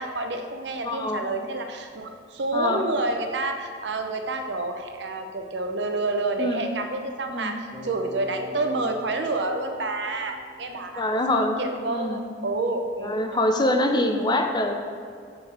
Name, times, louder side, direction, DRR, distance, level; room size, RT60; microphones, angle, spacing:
voice 1, 0.0-11.0 11.3-13.8, right 2 dB, 70° right, 5 dB, 0.7 m, -29 dB
voice 2, 0.8-1.3 2.5-2.8 6.4-6.7 7.3-7.6 11.0-11.6 11.9-12.3 13.0-14.7, left 1 dB, 25° left, 4 dB, 0.5 m, -24 dB
Bass guitar, 7.7-11.7, right 2 dB, 5° left, 1.4 m, -45 dB
6.8 x 6.5 x 4.2 m, 2.2 s
head